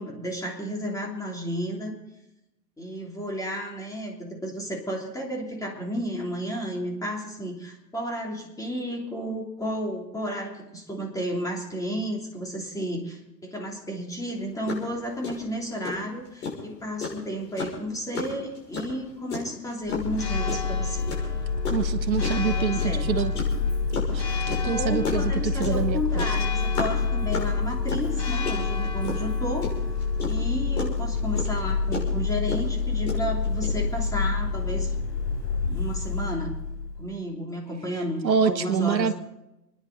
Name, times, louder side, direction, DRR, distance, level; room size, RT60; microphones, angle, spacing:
voice 1, 0.0-1.9 2.8-21.1 22.5-23.2 24.6-29.7 30.2-34.9 35.7-36.5 37.0-39.1, equal, 5° left, 0 dB, 3.2 m, -32 dB
sound 1, 14.3-14.4 14.7-14.9 15.2-34.0, left 4 dB, 65° left, 6.3 m, -33 dB
Church bell, 19.8-37.1, left 4 dB, 30° left, 4.2 m, -27 dB
voice 2, 21.7-23.3 24.1-26.2 38.2-39.1, right 6 dB, 85° right, 11 dB, 1.2 m, -26 dB
29.5 x 10.5 x 4.0 m, 0.92 s
hypercardioid pair, 105°, 50 cm